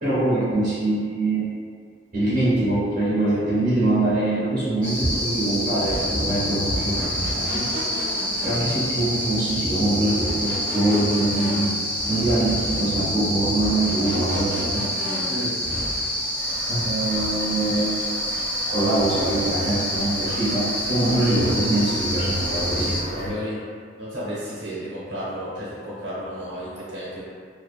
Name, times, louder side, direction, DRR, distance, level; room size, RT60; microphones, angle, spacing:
voice 1, 0.0-1.5 2.1-7.7 8.4-11.7 12.1-14.8 16.2-16.3 16.7-18.0 18.6-23.3, right 1 dB, 40° right, -12 dB, 0.7 m, -23 dB
sound 1, 4.8-23.0, equal, 10° left, 1.3 m, -27 dB
sound 2, 5.8-16.1, equal, 30° left, 0.8 m, -33 dB
Toilet flush / Fill (with liquid), 16.4-23.3, equal, 75° left, 1.3 m, -39 dB
voice 2, 23.1-23.6 24.0-27.2, equal, 75° right, -9 dB, 0.8 m, -32 dB
2.5 x 2.3 x 2.4 m, 2.1 s
head